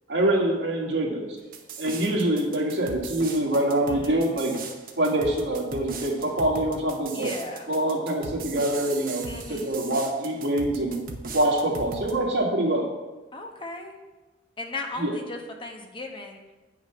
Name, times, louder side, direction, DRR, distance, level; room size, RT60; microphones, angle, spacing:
voice 1, 0.1-1.4 1.8-4.5 5.0-7.3 7.7-11.0 11.3-12.9 15.0-15.1, right 1 dB, 75° right, -1 dB, 2.0 m, -25 dB
sound 1, 1.5-12.1, right 4 dB, 50° right, 1.0 m, -38 dB
voice 2, 3.9-4.3 7.1-7.7 9.3-9.7 13.3-13.9 14.6-16.4, left 2 dB, 30° left, 3 dB, 1.1 m, -37 dB
8.8 x 6.0 x 5.9 m, 1.2 s
head